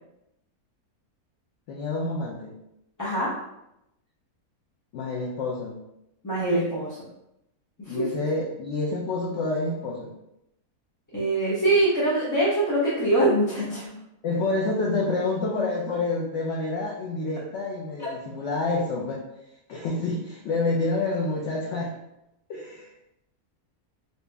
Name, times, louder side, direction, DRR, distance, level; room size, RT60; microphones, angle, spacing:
voice 1, 1.7-2.5 4.9-5.8 7.9-10.1 14.2-19.2 19.7-22.0 22.5-22.9, left 2 dB, 65° left, -2 dB, 0.7 m, -28 dB
voice 2, 6.2-7.0 7.8-8.1 11.1-13.9 18.0-18.1, right 1 dB, 15° left, -11 dB, 0.7 m, -23 dB
2.9 x 2.7 x 3.4 m, 0.84 s
omnidirectional pair, 1.7 m